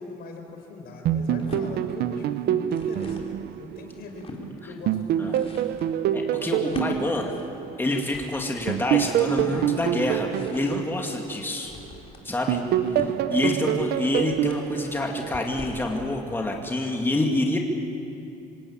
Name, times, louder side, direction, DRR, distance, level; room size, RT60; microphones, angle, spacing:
voice 1, 0.0-5.6 6.6-6.8, left 3 dB, 70° left, 3 dB, 4.7 m, -42 dB
sound 1, 1.1-4.4 4.9-8.1 8.7-12.0 12.5-15.7, right 11 dB, 75° right, 0.9 m, -26 dB
sound 2, 1.2-1.7 2.5-3.3 3.8-4.4 5.0-15.9, left 3 dB, 35° left, 3.7 m, -41 dB
voice 2, 6.1-7.3 7.8-11.7 12.2-12.6 12.9-17.6, left 2 dB, 15° left, 1 dB, 2.4 m, -27 dB
26.5 x 17.5 x 8.8 m, 2.7 s
cardioid pair, 110°, 17 cm